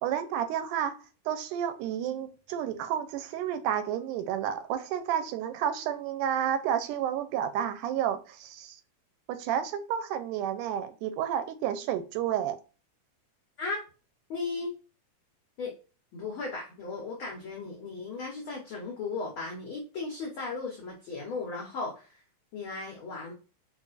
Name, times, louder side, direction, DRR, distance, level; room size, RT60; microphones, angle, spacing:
voice 1, 0.0-8.8 9.3-12.6, right 9 dB, 85° right, 2.0 m, -31 dB
voice 2, 14.3-14.7 15.6-15.7 16.1-22.2 22.5-23.3, left 3 dB, 90° left, 1.1 m, -36 dB
5.2 x 2.5 x 2.4 m
omnidirectional pair, 3.6 m